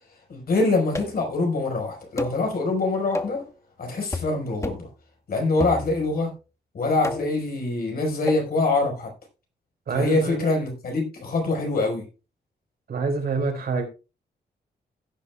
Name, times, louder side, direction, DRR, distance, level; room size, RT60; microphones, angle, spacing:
voice 1, 0.3-3.5 3.8-4.9 5.3-6.3 6.7-9.1 9.9-12.0, left 3 dB, 60° left, 4.8 m, -24 dB
sound 1, 0.9-1.3 2.2-2.4 3.1-3.4 4.1-4.4 4.6-4.9 5.6-6.2 7.0-7.4 8.3-8.5, left 2 dB, 15° left, 1.1 m, -32 dB
voice 2, 9.9-10.5 12.9-13.9, right 4 dB, 60° right, 4.5 m, -26 dB
16.0 x 9.8 x 2.3 m
wide cardioid pair, 140°, 18 cm